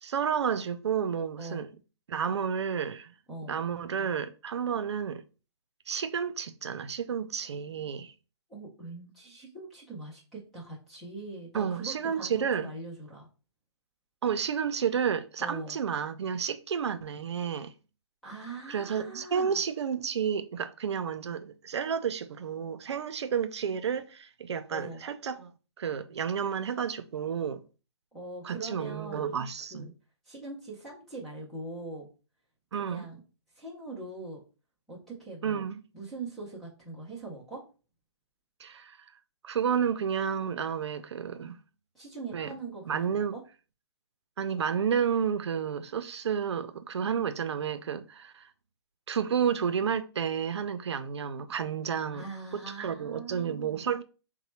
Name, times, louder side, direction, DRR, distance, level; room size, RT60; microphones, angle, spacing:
voice 1, 0.0-1.7 2.1-3.1 3.5-5.2 5.9-8.1 11.5-12.7 14.2-17.7 18.7-25.5 25.8-27.6 28.4-29.9 32.7-33.1 35.4-35.8 38.6-39.0 39.4-41.6 42.3-42.5 42.9-43.3 44.4-48.5 49.1-52.2 52.5-54.0, right 7 dB, 75° right, 0.5 m, -31 dB
voice 2, 8.5-13.3 15.4-15.8 18.2-19.6 24.7-25.0 28.1-29.3 29.7-29.9 30.2-32.1 32.7-33.2 33.5-34.4 34.9-35.6 35.9-37.6 41.9-43.4 52.1-53.9, right 3 dB, ahead, 0.4 m, -42 dB
4.0 x 2.1 x 4.3 m
hypercardioid pair, 180°, 15 cm